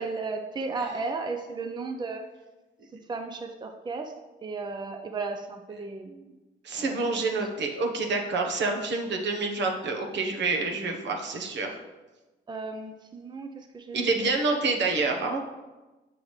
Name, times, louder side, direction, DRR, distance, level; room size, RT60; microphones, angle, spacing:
voice 1, 0.0-2.3 3.1-6.3 6.8-7.0 12.5-14.6, right 4 dB, 20° right, 5 dB, 0.6 m, -35 dB
voice 2, 6.6-11.7 13.9-15.4, right 3 dB, 65° right, 2 dB, 1.1 m, -27 dB
7.0 x 6.0 x 3.2 m, 1.1 s
cardioid pair, 90°, 20 cm